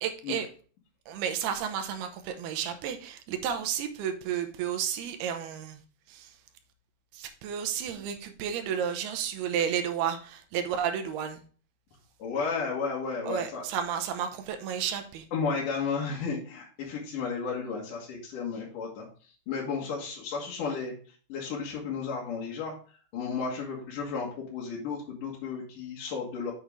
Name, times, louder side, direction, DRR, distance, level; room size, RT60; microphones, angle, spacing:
voice 1, 0.0-0.5 1.1-5.8 6.1-6.4 7.1-11.4 13.2-15.3, right 8 dB, 80° right, 7 dB, 2.8 m, -32 dB
voice 2, 12.2-13.6 15.3-26.5, left 5 dB, 60° left, -4 dB, 2.9 m, -33 dB
7.6 x 6.6 x 3.5 m, 0.40 s
omnidirectional pair, 4.8 m